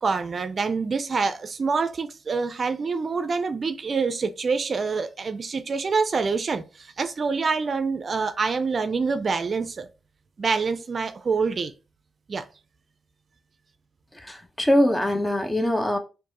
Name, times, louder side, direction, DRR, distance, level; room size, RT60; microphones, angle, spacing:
voice 1, 0.0-9.9 10.4-11.7 12.3-12.4, right 4 dB, 55° right, 0.5 m, -26 dB
voice 2, 14.1-16.0, left 1 dB, 15° left, 1.0 m, -23 dB
4.4 x 2.6 x 3.0 m
supercardioid pair, 50°, 0 cm